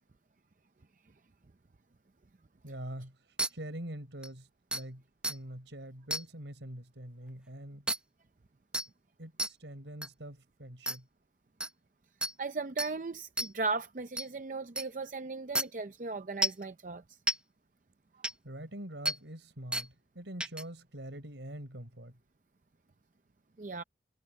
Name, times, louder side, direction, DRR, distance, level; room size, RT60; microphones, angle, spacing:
voice 1, 2.6-3.2 3.5-7.9 9.2-11.1 18.4-22.2, right 1 dB, 80° right, 5.1 m, -44 dB
sound 1, 3.4-3.5 4.2-4.3 4.7-4.8 5.2-5.3 6.1-6.2 7.9-8.0 8.7-8.9 9.4-9.5 10.0-10.1 10.9-11.0 11.6-11.7 12.2-12.3 12.8-12.9 13.4-13.5 14.2-14.3 14.8-14.9 15.5-15.6 16.4-16.6 17.3-17.4 18.2-18.3 19.0-19.2 19.7-19.9 20.4-20.6, right 1 dB, 5° right, 0.7 m, -31 dB
voice 2, 12.4-17.2 23.6-23.8, right 3 dB, 45° right, 0.6 m, -37 dB
head